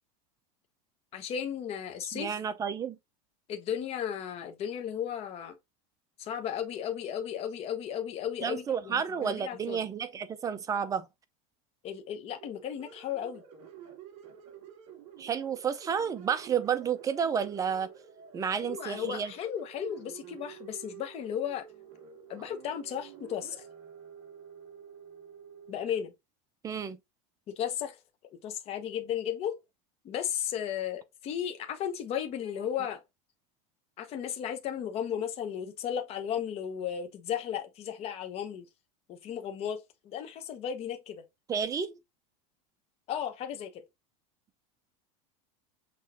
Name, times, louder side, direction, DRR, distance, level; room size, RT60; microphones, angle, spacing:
voice 1, 1.1-2.4 3.5-5.5 6.2-9.8 11.8-13.4 18.6-21.6 22.3-23.6 25.7-26.1 27.5-28.0 28.4-29.5 30.0-33.0 34.0-38.6 39.1-41.2 43.1-43.8, left 9 dB, 35° left, 1.0 m, -35 dB
voice 2, 2.1-3.0 8.4-11.1 15.2-17.9 18.3-19.3 26.6-27.0 41.5-41.9, right 7 dB, 20° right, 0.5 m, -31 dB
sound 1, 12.3-26.0, right 8 dB, 65° right, 2.2 m, -50 dB
6.0 x 3.1 x 2.9 m
supercardioid pair, 145°, 18 cm